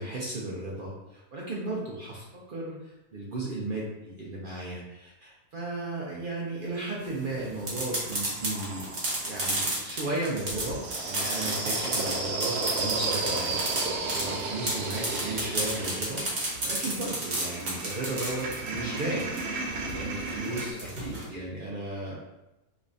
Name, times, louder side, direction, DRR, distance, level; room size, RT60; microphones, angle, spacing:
voice 1, 0.0-8.9 9.2-13.5 13.9-19.3 19.6-22.2, right 2 dB, 60° right, -4 dB, 0.5 m, -35 dB
sound 1, 7.0-21.2, right 1 dB, 45° right, 1.1 m, -33 dB
sound 2, 7.0-9.5 10.3-20.7, right 3 dB, 90° right, 1.1 m, -34 dB
3.4 x 3.1 x 2.6 m, 0.96 s
omnidirectional pair, 1.6 m